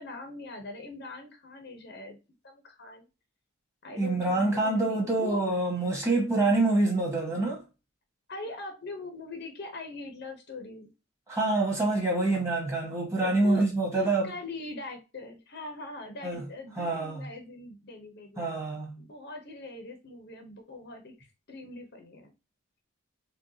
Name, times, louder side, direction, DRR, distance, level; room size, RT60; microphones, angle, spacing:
voice 1, 0.0-2.2 2.4-3.1 3.8-5.4 8.3-10.9 13.1-13.6 13.9-18.5 19.0-22.3, left 2 dB, 50° left, 0.7 m, -42 dB
voice 2, 4.0-7.6 11.3-14.3 16.2-16.4 16.8-17.2 18.4-19.0, right 2 dB, 15° right, 1.4 m, -26 dB
4.5 x 2.3 x 2.7 m
head